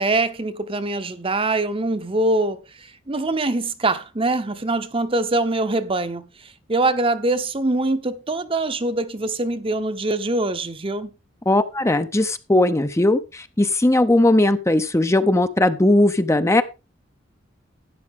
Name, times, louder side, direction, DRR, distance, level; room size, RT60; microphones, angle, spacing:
voice 1, 0.0-11.1, right 2 dB, 30° right, 0.9 m, -23 dB
voice 2, 11.5-16.6, left 1 dB, 15° left, 0.6 m, -18 dB
12.0 x 9.7 x 3.6 m
head